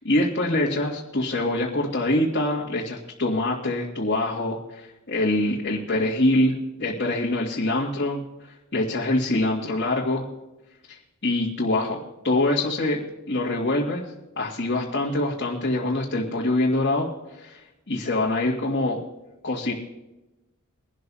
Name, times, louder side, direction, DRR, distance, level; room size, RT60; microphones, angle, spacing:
voice 1, 0.0-8.2 8.7-10.2 10.9-11.0 11.2-13.0 13.3-14.0 14.4-17.1 17.3-17.6 17.9-19.0 19.4-19.7, left 1 dB, 55° left, -5 dB, 2.2 m, -24 dB
23.0 x 12.5 x 2.8 m, 0.97 s
head